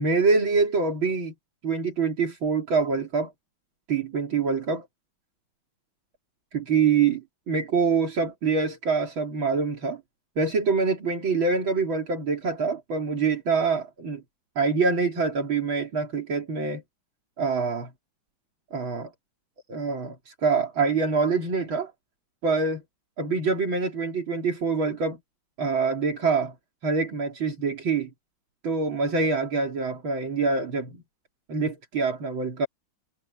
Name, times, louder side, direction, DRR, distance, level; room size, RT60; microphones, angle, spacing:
voice 1, 0.0-1.3 1.6-3.3 3.9-4.9 6.5-10.0 10.4-14.2 14.6-16.8 17.4-17.9 18.7-19.1 19.7-21.9 22.4-22.8 23.2-25.2 25.6-26.5 26.8-28.1 28.6-31.0 31.5-32.7, right 4 dB, 75° right, 3.9 m, -25 dB
omnidirectional pair, 2.2 m